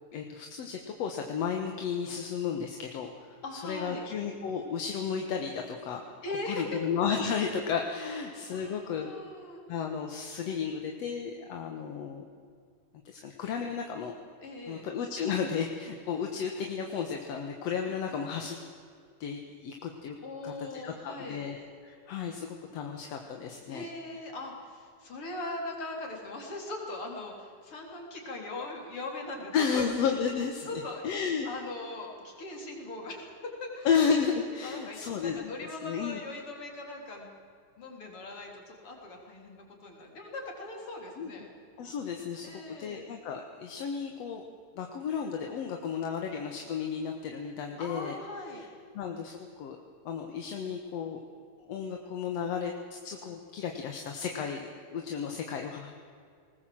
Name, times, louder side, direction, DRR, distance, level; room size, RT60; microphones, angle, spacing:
voice 1, 0.1-3.1 3.5-6.0 6.5-9.1 9.7-12.2 13.1-14.1 14.7-18.6 19.2-20.2 20.4-20.5 20.8-23.9 29.5-31.5 33.8-35.4 35.8-36.2 41.2-41.3 41.8-44.4 44.8-48.2 48.5-48.7 48.9-49.8 50.1-51.2 51.7-55.9, left 6 dB, 60° left, 3 dB, 2.3 m, -33 dB
voice 2, 3.4-4.1 6.2-6.8 8.0-8.2 8.5-9.6 14.4-14.9 20.2-21.4 23.7-29.8 30.7-31.0 31.4-33.3 33.6-33.9 34.6-37.3 37.8-41.5 42.4-43.0 47.8-48.6, left 2 dB, 45° left, 1 dB, 4.4 m, -40 dB
20.0 x 19.5 x 7.8 m, 2.3 s
omnidirectional pair, 3.6 m